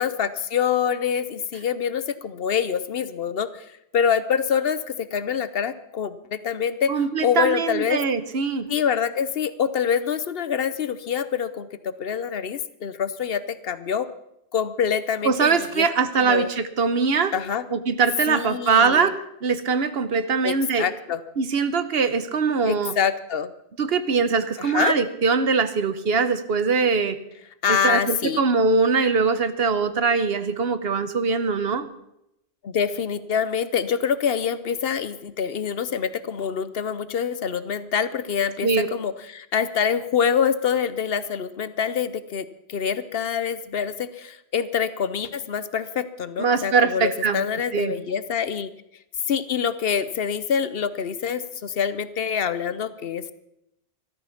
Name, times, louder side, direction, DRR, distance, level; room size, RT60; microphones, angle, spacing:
voice 1, 0.0-3.7 3.9-6.9 7.2-8.0 8.7-14.1 14.5-15.9 16.2-16.5 17.3-17.7 18.3-19.1 20.4-21.2 22.6-23.5 24.6-24.9 27.6-28.4 32.6-48.7 49.3-53.3, left 7 dB, 65° left, 14 dB, 0.9 m, -25 dB
voice 2, 6.9-8.7 15.2-17.3 17.7-20.9 21.4-22.9 23.8-27.2 27.7-31.9 38.6-38.9 46.4-47.4 47.7-47.9, right 5 dB, 65° right, 11 dB, 1.1 m, -22 dB
14.0 x 13.0 x 5.8 m, 0.81 s
omnidirectional pair, 1.1 m